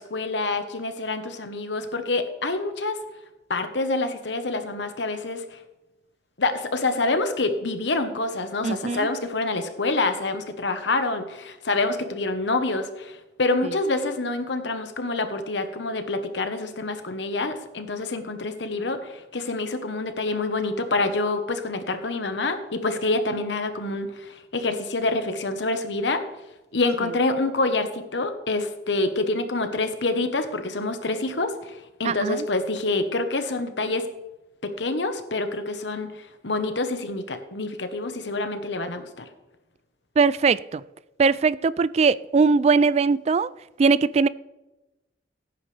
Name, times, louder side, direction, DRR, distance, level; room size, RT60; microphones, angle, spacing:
voice 1, 0.0-3.0 3.5-5.6 6.4-26.2 26.7-34.1 34.6-39.3, left 2 dB, 85° left, 8 dB, 1.2 m, -27 dB
voice 2, 8.6-9.1 13.6-13.7 32.0-32.5 40.2-40.8 41.2-43.5 43.8-44.3, right 4 dB, 35° right, 19 dB, 0.3 m, -20 dB
16.5 x 9.1 x 3.4 m, 1.0 s
head